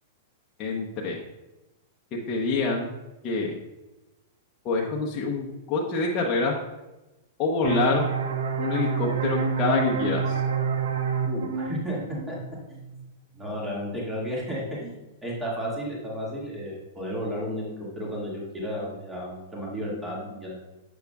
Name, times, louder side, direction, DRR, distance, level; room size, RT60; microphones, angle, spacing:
voice 1, 0.6-1.2 2.1-2.9 3.2-3.6 4.6-6.6 7.4-8.1 8.6-10.4, left 3 dB, 35° left, -2 dB, 0.9 m, -26 dB
sound 1, 7.6-13.0, right 5 dB, 90° right, 0.7 m, -28 dB
voice 2, 11.2-12.0 12.3-12.4 12.7-12.8 13.3-15.0 15.2-20.6, equal, 10° right, -5 dB, 2.0 m, -33 dB
7.1 x 6.5 x 2.4 m, 1.0 s
hypercardioid pair, 130°, 0 cm